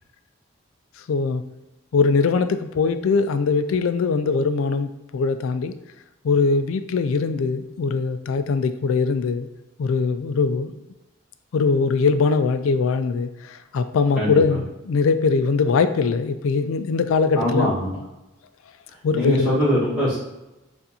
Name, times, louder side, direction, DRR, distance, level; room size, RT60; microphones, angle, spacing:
voice 1, 1.1-1.4 1.9-5.7 6.2-9.5 9.8-10.7 11.5-17.7 19.0-19.5, left 4 dB, 90° left, 11 dB, 0.4 m, -21 dB
voice 2, 17.3-18.0 19.1-20.2, equal, 5° right, -16 dB, 1.5 m, -22 dB
6.7 x 2.5 x 2.8 m, 1.0 s
head